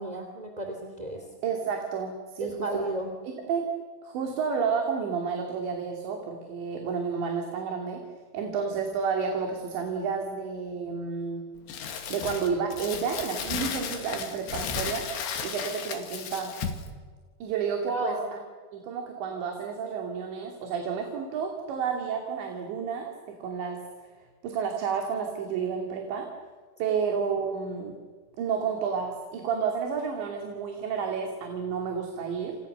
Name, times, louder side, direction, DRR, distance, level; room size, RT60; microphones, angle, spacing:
voice 1, 0.0-1.2 2.4-3.1 17.9-18.2 26.9-27.0, right 1 dB, 10° right, 3 dB, 2.3 m, -33 dB
voice 2, 1.4-2.8 3.3-3.7 4.0-8.0 8.3-11.4 12.1-15.1 15.4-16.5 17.4-18.2 18.7-23.8 24.4-26.3 26.8-28.0 28.4-32.6, right 6 dB, 90° right, 2 dB, 5.0 m, -31 dB
Crumpling crinkling, 11.7-16.9, left 6 dB, 75° left, 4.6 m, -34 dB
30.0 x 29.0 x 6.8 m, 1.5 s
omnidirectional pair, 5.0 m